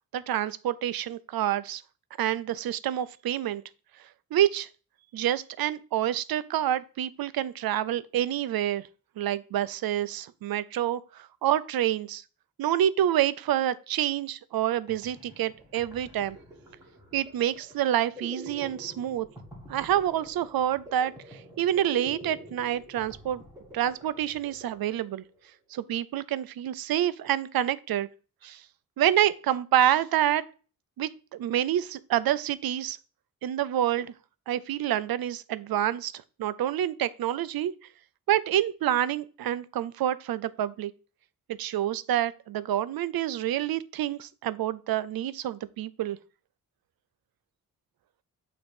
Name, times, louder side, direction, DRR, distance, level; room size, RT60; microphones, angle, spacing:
voice 1, 0.1-1.8 2.2-3.6 4.3-4.7 5.1-8.8 9.2-12.2 12.6-16.4 17.1-19.3 19.7-23.4 23.7-25.2 25.7-28.1 28.4-28.6 29.0-30.4 31.0-33.0 33.4-34.1 34.5-37.7 38.3-40.9 41.6-46.2, right 11 dB, 85° right, 0.5 m, -27 dB
sound 1, 14.6-14.7 14.9-25.5, equal, 10° right, 1.7 m, -47 dB
8.8 x 3.0 x 5.2 m
wide cardioid pair, 160°, 35 cm